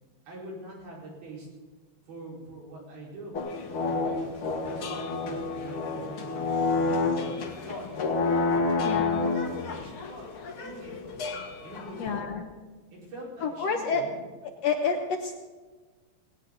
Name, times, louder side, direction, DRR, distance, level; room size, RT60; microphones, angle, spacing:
voice 1, 0.3-1.5 2.1-3.4 3.8-7.9 8.5-9.0 9.4-10.3 10.6-11.0 11.6-12.2 12.9-14.1, right 1 dB, 80° right, -4 dB, 6.7 m, -43 dB
sound 1, 3.3-12.2, left 3 dB, 50° left, 1.8 m, -29 dB
voice 2, 8.8-9.4 12.0-12.5 13.4-14.0 14.6-15.4, left 5 dB, 70° left, 4 dB, 1.5 m, -29 dB
18.5 x 18.0 x 4.0 m, 1.3 s
omnidirectional pair, 4.2 m